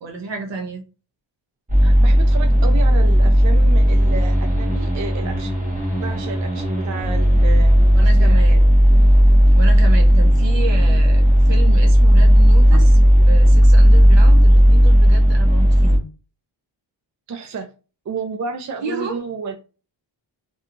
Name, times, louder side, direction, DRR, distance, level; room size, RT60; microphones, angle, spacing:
voice 1, 0.0-0.8 7.9-8.7 9.5-12.9 13.2-16.1 18.8-19.2, right 3 dB, 65° right, 0.9 m, -31 dB
sound 1, 1.7-16.0, equal, 15° right, 1.0 m, -13 dB
voice 2, 1.8-5.6 5.9-8.7 17.3-17.7 18.1-19.6, right 5 dB, 40° right, 0.4 m, -31 dB
2.8 x 2.3 x 2.5 m
cardioid pair, 80°, 46 cm